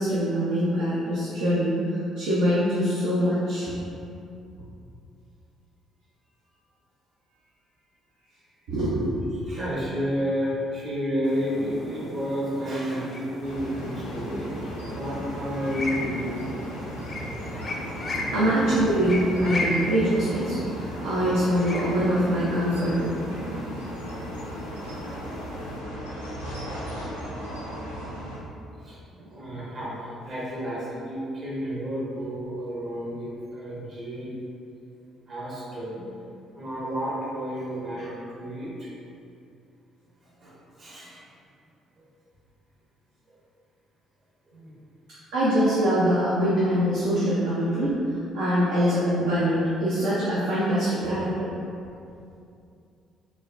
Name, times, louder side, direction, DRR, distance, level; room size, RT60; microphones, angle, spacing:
voice 1, 0.0-3.7 8.7-9.1 18.3-23.1 29.3-29.4 45.3-48.0 48.3-51.5, equal, 65° right, -9 dB, 0.6 m, -24 dB
voice 2, 9.5-16.8 17.5-17.6 28.7-34.4 35.3-36.0 36.5-38.9 40.2-41.2 43.3-43.4 44.5-44.7, equal, 50° right, -7 dB, 1.2 m, -31 dB
sound 1, 11.2-25.8, left 1 dB, 40° left, 0.4 m, -36 dB
sound 2, 13.4-28.4, equal, 90° left, 0.5 m, -36 dB
4.0 x 2.3 x 2.4 m, 2.6 s
figure-of-eight pair, 45°, 0 cm